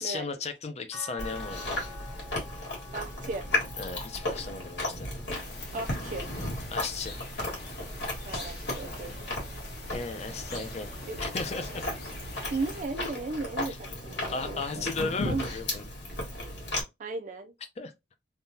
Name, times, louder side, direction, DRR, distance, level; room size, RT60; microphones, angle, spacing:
voice 1, 0.0-1.9 3.8-5.1 6.7-7.2 9.9-11.9 14.3-15.9 17.8-17.9, left 4 dB, 40° left, 0.5 m, -35 dB
sound 1, 0.9-7.2 7.8-9.1 10.5-10.6, left 3 dB, 10° left, 0.8 m, -50 dB
Chewing mastication, 1.2-16.8, left 1 dB, 90° left, 1.7 m, -35 dB
voice 2, 2.9-3.5 5.7-6.3 8.2-9.2 11.1-11.2 12.5-14.9 15.2-15.5 17.0-17.5, right 3 dB, 45° right, 0.4 m, -35 dB
sound 2, 5.3-12.8, left 2 dB, 60° left, 1.3 m, -44 dB
3.5 x 2.3 x 2.7 m
head